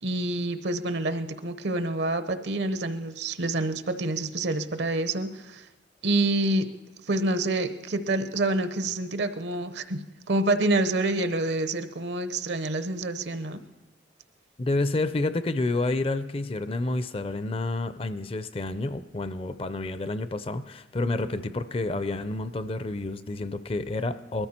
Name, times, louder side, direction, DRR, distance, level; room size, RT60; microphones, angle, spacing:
voice 1, 0.0-5.6 6.0-6.7 7.1-13.6, right 2 dB, 70° right, 10 dB, 0.8 m, -27 dB
voice 2, 14.6-24.5, left 2 dB, 30° left, 12 dB, 0.4 m, -29 dB
20.5 x 13.5 x 4.3 m, 1.0 s
head